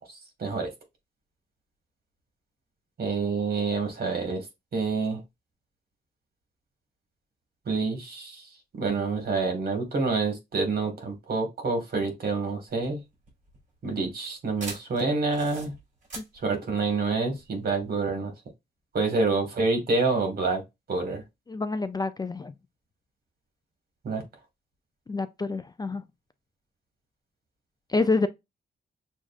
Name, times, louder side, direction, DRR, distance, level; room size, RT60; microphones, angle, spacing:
voice 1, 0.4-0.7 3.0-4.4 4.7-5.2 7.6-8.5 8.8-13.0 13.8-15.7 16.4-18.3 18.9-20.6 20.9-21.2 24.0-24.2, right 3 dB, 60° right, 1.6 m, -27 dB
sound 1, 12.7-17.8, right 2 dB, 45° right, 2.7 m, -44 dB
voice 2, 21.5-22.5 25.1-26.0 27.9-28.3, left 3 dB, 25° left, 0.3 m, -27 dB
6.2 x 2.4 x 2.4 m
wide cardioid pair, 115°, 18 cm